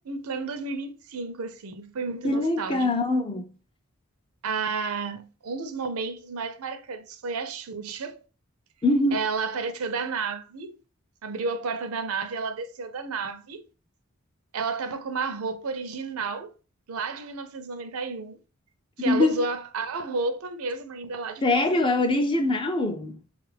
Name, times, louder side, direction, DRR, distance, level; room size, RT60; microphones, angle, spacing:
voice 1, 0.0-3.0 4.4-8.2 9.1-10.8 11.2-13.7 14.5-16.5 16.9-18.4 19.0-21.8, right 4 dB, 75° right, 0.5 m, -32 dB
voice 2, 2.2-3.5 8.8-9.1 19.0-19.4 21.4-23.2, left 2 dB, 20° left, 0.4 m, -23 dB
3.8 x 2.4 x 3.3 m
head